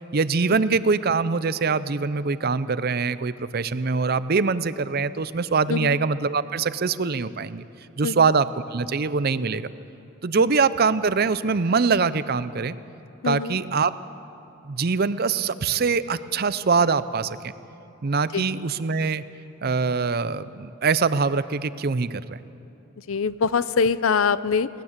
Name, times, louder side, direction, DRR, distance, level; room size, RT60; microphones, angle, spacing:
voice 1, 0.1-7.6 8.0-9.7 10.2-12.8 13.2-13.9 14.7-17.4 18.0-19.2 19.6-22.4, right 4 dB, 50° right, 15 dB, 0.6 m, -23 dB
voice 2, 13.2-13.6 18.3-18.6 23.0-24.7, left 5 dB, 80° left, 16 dB, 0.6 m, -24 dB
19.0 x 19.0 x 7.4 m, 2.9 s
head